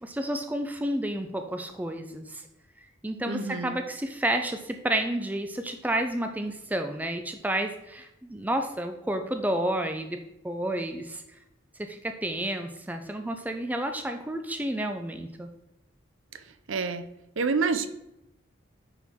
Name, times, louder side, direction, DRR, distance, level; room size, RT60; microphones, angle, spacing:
voice 1, 0.0-2.4 3.0-10.2 10.4-11.2 11.8-15.5, right 1 dB, 10° right, 5 dB, 0.4 m, -30 dB
voice 2, 3.3-3.8 16.3-16.4 16.7-17.0 17.4-17.9, right 4 dB, 65° right, 9 dB, 0.6 m, -27 dB
9.9 x 4.4 x 3.6 m, 0.87 s
head